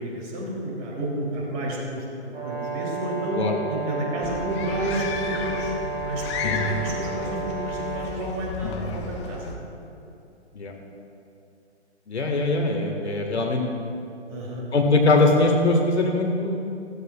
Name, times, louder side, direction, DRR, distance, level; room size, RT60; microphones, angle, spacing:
voice 1, 0.0-3.4 3.7-5.7 6.0-9.5 14.3-14.6, right 1 dB, 30° right, -2 dB, 3.1 m, -31 dB
Brass instrument, 2.3-8.1, right 4 dB, 75° right, 3.1 m, -32 dB
sound 1, 4.2-9.6, left 3 dB, 25° left, 0.8 m, -32 dB
voice 2, 12.1-13.6 14.7-16.7, left 2 dB, 70° left, 2 dB, 1.8 m, -21 dB
17.0 x 14.5 x 2.4 m, 2.6 s
figure-of-eight pair, 130°, 35 cm